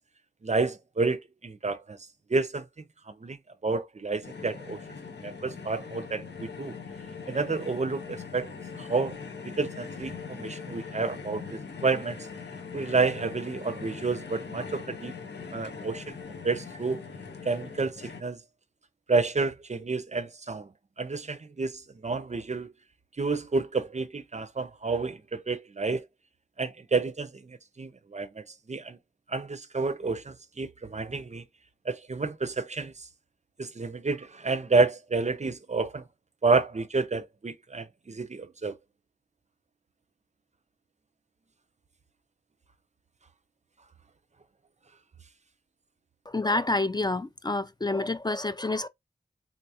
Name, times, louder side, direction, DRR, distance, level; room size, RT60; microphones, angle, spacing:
voice 1, 0.4-2.0 2.3-2.6 3.2-3.4 3.6-4.8 5.2-6.7 7.3-8.5 8.8-9.2 9.4-12.2 12.7-15.1 15.5-16.2 16.4-17.0 17.5-18.4 19.1-20.7 21.0-22.7 23.2-26.0 26.6-29.0 29.3-31.4 31.9-32.9 33.6-36.0 36.4-38.8, right 3 dB, 40° right, 0.4 m, -29 dB
sound 1, 4.2-18.2, left 5 dB, 85° left, 0.7 m, -41 dB
voice 2, 46.3-48.9, left 2 dB, 25° left, 0.3 m, -28 dB
3.7 x 2.3 x 2.7 m
wide cardioid pair, 50°, 18 cm